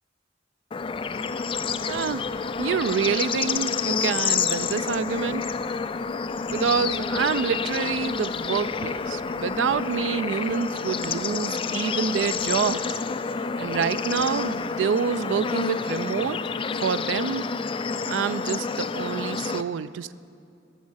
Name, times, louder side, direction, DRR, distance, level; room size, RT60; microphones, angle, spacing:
Bird / Insect / Frog, 0.7-19.6, left 5 dB, 30° left, 0.3 m, -29 dB
sound 1, 0.8-15.0, equal, 65° left, 3.1 m, -56 dB
voice 1, 1.9-2.3 2.6-5.4 6.5-13.0 13.6-16.4 16.8-17.5 18.1-20.1, right 6 dB, 75° right, 15 dB, 0.4 m, -27 dB
19.0 x 7.3 x 6.3 m, 2.5 s
head